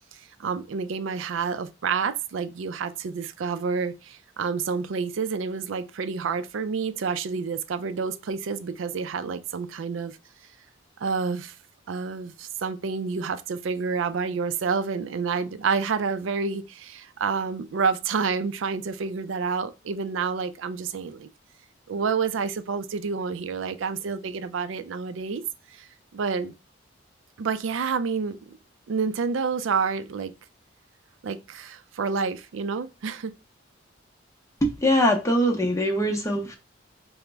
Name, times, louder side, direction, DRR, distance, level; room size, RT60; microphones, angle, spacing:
voice 1, 0.4-10.2 11.0-11.5 11.9-21.3 21.9-25.4 25.7-26.5 27.4-28.6 28.9-30.3 31.2-33.3, right 5 dB, 70° right, 0.4 m, -29 dB
voice 2, 34.6-36.5, equal, 15° left, 0.6 m, -22 dB
4.8 x 2.1 x 3.3 m
head